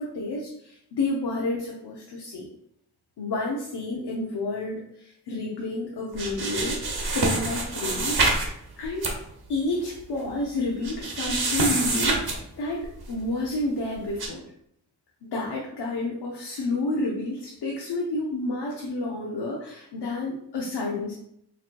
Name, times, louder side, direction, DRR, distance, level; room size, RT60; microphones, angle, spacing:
voice 1, 0.0-2.5 3.2-8.2 8.5-9.1 9.5-14.4 15.2-21.1, left 2 dB, 80° left, -2 dB, 0.7 m, -30 dB
sound 1, 6.1-8.5 8.8-9.1 9.9-10.0 10.2-10.3 10.8-12.4 12.8-13.1 14.2-14.3, right 3 dB, 65° right, 1.0 m, -26 dB
4.4 x 3.0 x 2.4 m, 0.74 s
cardioid pair, 55°, 40 cm